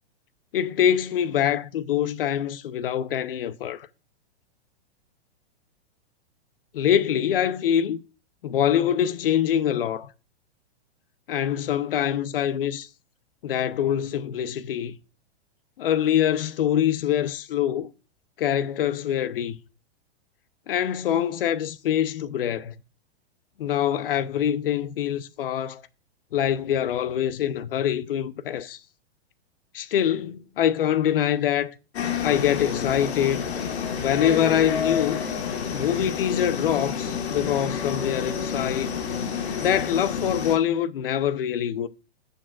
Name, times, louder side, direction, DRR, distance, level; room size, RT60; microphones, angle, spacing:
voice 1, 0.5-3.9 6.7-8.0 8.4-10.1 11.3-12.9 13.4-15.0 15.8-17.9 18.4-19.6 20.7-22.7 23.6-25.8 26.3-28.8 29.7-31.7 32.2-33.4 34.0-35.3 35.7-39.0 39.6-41.9, left 10 dB, 55° left, 0.8 m, -24 dB
sound 1, 31.9-40.6, left 7 dB, 75° left, 2.1 m, -29 dB
13.5 x 6.9 x 2.5 m
supercardioid pair, 175°, 33 cm